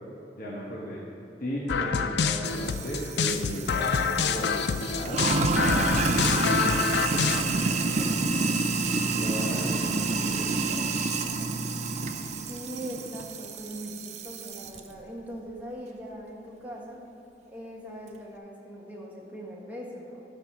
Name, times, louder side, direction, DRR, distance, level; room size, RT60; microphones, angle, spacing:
voice 1, 0.4-1.0 1.4-8.1 8.9-10.8 11.1-11.2, equal, 50° left, -5 dB, 1.1 m, -36 dB
sound 1, 1.7-7.4, left 6 dB, 65° left, 0.4 m, -27 dB
Sink (filling or washing), 2.5-14.8, right 3 dB, 40° right, 0.5 m, -29 dB
voice 2, 12.3-17.0 17.5-20.2, equal, 10° right, -4 dB, 1.5 m, -40 dB
11.0 x 5.2 x 6.0 m, 2.9 s
head